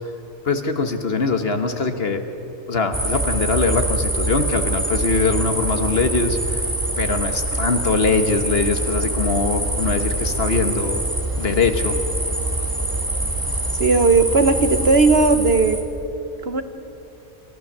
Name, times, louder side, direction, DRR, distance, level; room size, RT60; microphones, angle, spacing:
voice 1, 0.4-2.2 2.7-6.6 7.0-11.1 11.4-12.0, left 4 dB, 50° left, 7 dB, 1.5 m, -22 dB
sound 1, 2.9-15.8, right 1 dB, 15° right, 2.0 m, -24 dB
voice 2, 13.8-15.8 16.4-16.6, right 3 dB, 50° right, 9 dB, 1.1 m, -16 dB
28.0 x 14.5 x 7.3 m, 3.0 s
omnidirectional pair, 1.4 m